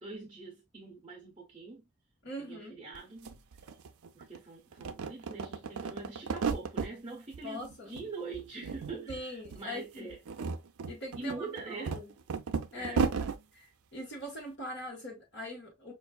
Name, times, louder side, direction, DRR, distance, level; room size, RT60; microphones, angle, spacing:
voice 1, 0.0-1.9 2.4-3.8 4.1-10.2 11.2-12.0 12.7-13.0, right 4 dB, 20° right, 0.7 m, -44 dB
voice 2, 2.2-2.8 7.4-8.0 9.1-10.1 10.9-12.1 12.7-13.1 13.5-15.9, left 1 dB, 50° left, 1.3 m, -42 dB
sound 1, 2.9-3.0 3.2-4.4 4.7-6.9 7.3-8.1 8.3-9.2 9.5-9.6 10.1-13.4, right 5 dB, 80° right, 0.5 m, -34 dB
5.4 x 2.5 x 2.2 m
head